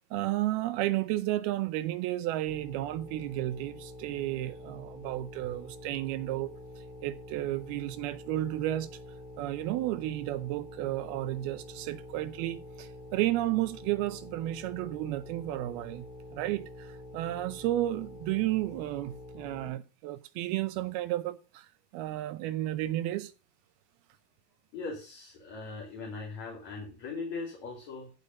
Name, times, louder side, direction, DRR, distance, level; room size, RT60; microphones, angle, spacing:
voice 1, 0.1-6.5 7.0-8.9 9.4-16.1 16.3-23.3, right 15 dB, 80° right, 2.4 m, -32 dB
sound 1, 2.5-19.7, left 1 dB, 75° left, 6.2 m, -47 dB
voice 2, 24.7-28.1, left 4 dB, 45° left, 3.6 m, -39 dB
15.0 x 5.2 x 5.4 m
omnidirectional pair, 4.7 m